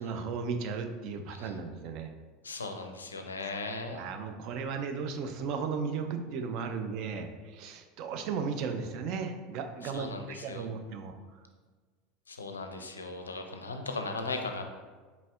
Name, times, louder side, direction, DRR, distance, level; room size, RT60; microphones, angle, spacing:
voice 1, 0.0-2.1 3.8-11.1, right 5 dB, 50° right, 6 dB, 0.4 m, -35 dB
voice 2, 2.4-4.0 9.8-10.7 12.3-14.6, left 3 dB, 80° left, 5 dB, 0.4 m, -37 dB
4.1 x 4.0 x 2.3 m, 1.4 s
figure-of-eight pair, 75°, 0 cm